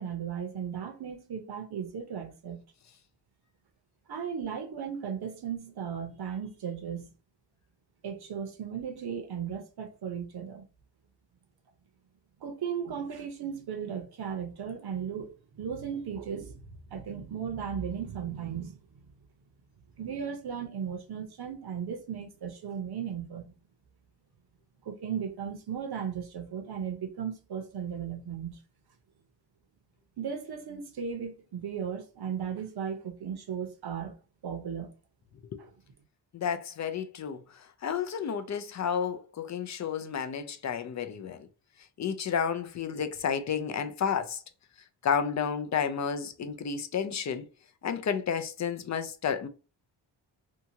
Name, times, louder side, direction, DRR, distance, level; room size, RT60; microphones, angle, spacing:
voice 1, 0.0-2.6 4.1-7.1 8.0-10.6 12.4-19.0 20.0-23.5 24.8-28.6 30.2-34.1 34.4-34.9 35.6-35.7, right 7 dB, 55° right, 0.8 m, -36 dB
voice 2, 36.3-37.4 37.8-41.5 42.0-44.4 45.0-47.5 47.8-49.5, left 7 dB, 40° left, 0.4 m, -31 dB
2.8 x 2.3 x 2.7 m
cardioid pair, 100°, 45 cm